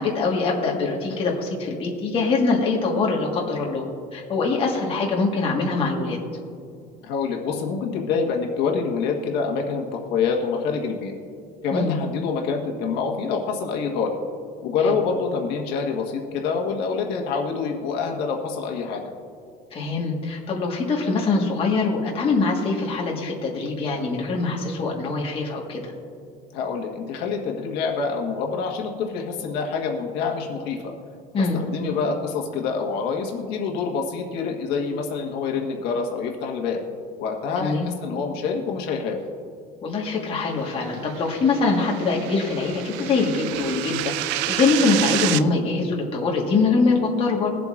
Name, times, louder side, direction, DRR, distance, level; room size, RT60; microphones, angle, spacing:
voice 1, 0.0-3.8 4.1-6.2 11.7-11.9 14.8-14.9 19.7-25.9 31.3-31.6 37.6-37.9 39.8-44.1 44.5-47.5, left 3 dB, 30° left, -1 dB, 1.6 m, -23 dB
voice 2, 7.0-11.1 11.6-14.2 14.6-19.0 26.5-30.9 31.4-36.8 37.2-39.2, left 5 dB, 70° left, 0 dB, 1.4 m, -26 dB
sound 1, 41.0-45.4, right 15 dB, 85° right, 0.4 m, -29 dB
22.0 x 7.6 x 2.5 m, 2.3 s
cardioid pair, 155°, 18 cm